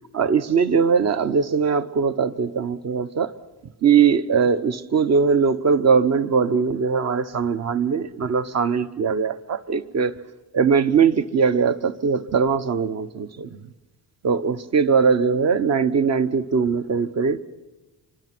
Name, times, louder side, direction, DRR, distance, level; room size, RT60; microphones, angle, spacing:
voice 1, 0.1-3.3 3.8-10.1 10.5-13.7 14.2-17.4, right 6 dB, 40° right, 0.9 m, -20 dB
26.0 x 23.5 x 6.0 m
cardioid pair, 160°, 43 cm